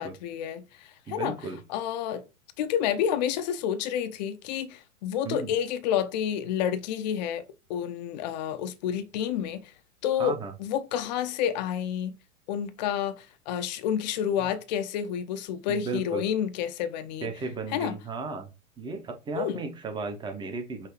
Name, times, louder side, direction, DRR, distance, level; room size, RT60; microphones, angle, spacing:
voice 1, 0.0-1.4 1.7-2.2 2.6-9.7 10.0-12.2 12.5-17.3 17.7-18.0 19.3-19.6, left 9 dB, 35° left, 0.5 m, -29 dB
voice 2, 1.1-1.6 5.2-5.5 10.2-10.5 14.4-14.5 15.7-16.2 17.2-18.5 18.8-20.9, right 4 dB, 10° right, 0.7 m, -34 dB
5.7 x 2.7 x 3.0 m
figure-of-eight pair, 105°, 40 cm